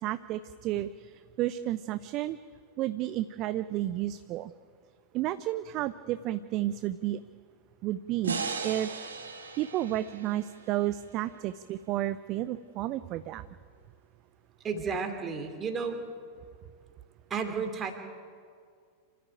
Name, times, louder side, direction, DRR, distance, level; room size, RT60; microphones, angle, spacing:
voice 1, 0.0-2.4 2.8-4.5 5.1-7.2 7.8-8.9 9.6-13.4, right 14 dB, 40° right, 14 dB, 0.6 m, -32 dB
sound 1, 8.2-11.5, right 5 dB, 70° right, 1.9 m, -37 dB
voice 2, 14.6-16.0 17.3-17.9, right 5 dB, 25° right, 5 dB, 2.9 m, -32 dB
27.0 x 13.5 x 9.1 m, 2.1 s
figure-of-eight pair, 90°, 0 cm